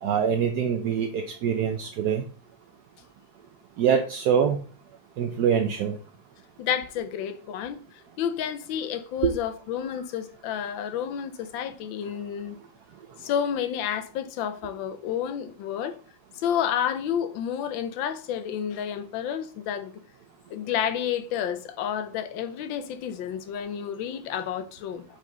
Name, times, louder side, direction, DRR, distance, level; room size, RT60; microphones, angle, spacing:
voice 1, 0.0-2.2 3.8-4.6 5.2-6.0 9.2-9.3, right 7 dB, 70° right, 0.9 m, -24 dB
voice 2, 6.6-12.6 13.2-16.0 16.3-19.9 20.5-25.0, left 9 dB, 70° left, 1.3 m, -30 dB
5.3 x 5.1 x 3.9 m
omnidirectional pair, 2.4 m